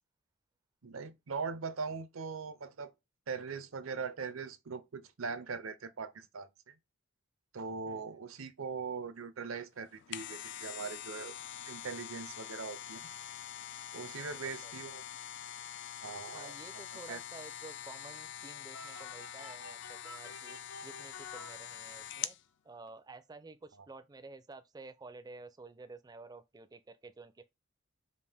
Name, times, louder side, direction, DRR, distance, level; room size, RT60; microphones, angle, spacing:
voice 1, 0.8-2.9 3.3-6.7 7.5-11.4 11.6-13.0 13.9-15.0 16.0-16.5 17.1-17.2, right 5 dB, 75° right, 0.6 m, -41 dB
voice 2, 7.9-8.2 14.4-14.9 16.3-22.4 22.6-27.5, right 3 dB, 20° right, 0.4 m, -52 dB
sound 1, 9.8-22.4 22.9-23.0, left 11 dB, 60° left, 0.4 m, -45 dB
sound 2, 18.7-22.2, left 4 dB, 85° left, 0.8 m, -50 dB
5.2 x 2.4 x 3.4 m
head